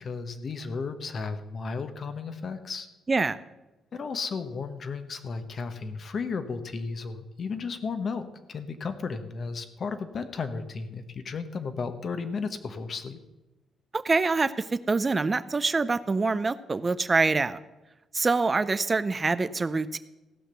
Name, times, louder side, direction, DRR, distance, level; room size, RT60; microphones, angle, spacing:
voice 1, 0.0-2.9 3.9-13.2, left 4 dB, 50° left, 9 dB, 1.1 m, -34 dB
voice 2, 13.9-17.6 18.1-20.0, right 3 dB, 30° right, 14 dB, 0.6 m, -25 dB
15.0 x 5.9 x 6.8 m, 1.0 s
cardioid pair, 90°, 0 cm